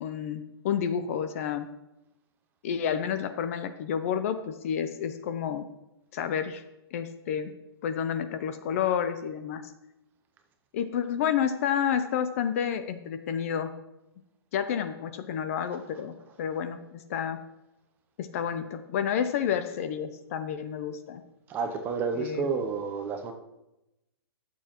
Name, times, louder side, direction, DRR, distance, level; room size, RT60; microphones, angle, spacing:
voice 1, 0.0-1.7 2.6-5.7 6.1-6.6 6.9-7.5 7.8-9.6 10.7-13.7 14.5-17.4 18.2-21.2 22.2-22.5, left 8 dB, 35° left, 0.5 m, -30 dB
voice 2, 21.5-23.3, right 5 dB, 15° right, 0.6 m, -30 dB
14.0 x 7.0 x 2.9 m
hypercardioid pair, 165°, 14 cm